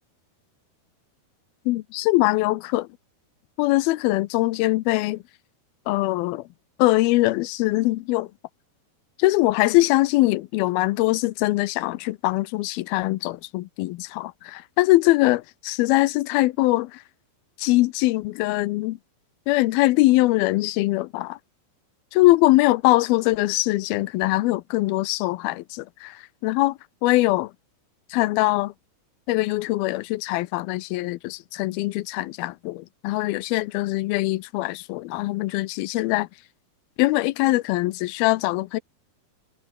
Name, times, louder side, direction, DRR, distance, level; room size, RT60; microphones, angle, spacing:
voice 1, 1.7-2.9 3.6-5.2 5.9-6.4 6.8-8.3 9.2-17.0 17.6-19.0 19.5-21.4 22.1-27.5 28.1-28.7 29.3-36.3 37.0-38.8, left 19 dB, 80° left, 2.5 m, -22 dB
omnidirectional pair, 4.6 m